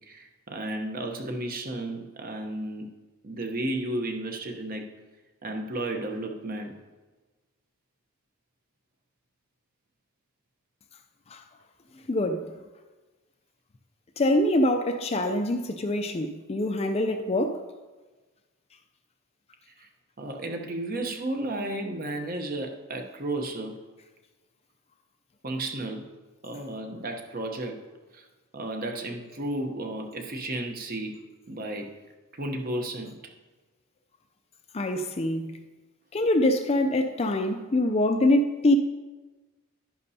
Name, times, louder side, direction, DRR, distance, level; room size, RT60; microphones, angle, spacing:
voice 1, 0.1-2.9 3.2-4.9 5.4-6.8 19.8-19.9 20.2-23.8 25.4-26.1 26.4-27.8 28.1-28.3 28.5-31.2 31.5-31.9 32.4-33.2, right 1 dB, 40° right, 0.9 m, -33 dB
voice 2, 12.1-12.5 14.2-17.7 34.7-35.6 36.1-38.7, left 1 dB, 25° left, 0.4 m, -24 dB
11.0 x 10.5 x 2.8 m
head